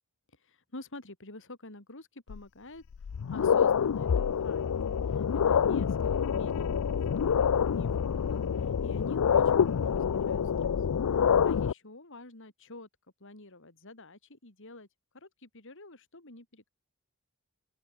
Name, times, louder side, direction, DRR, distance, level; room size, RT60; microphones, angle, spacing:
voice 1, 0.4-2.8 3.3-10.7 11.1-12.9 13.2-14.9 15.1-16.7, left 2 dB, 60° left, 3.9 m, -49 dB
sound 1, 2.3-2.4 2.9-11.7, left 7 dB, 80° left, 0.4 m, -27 dB
open air
head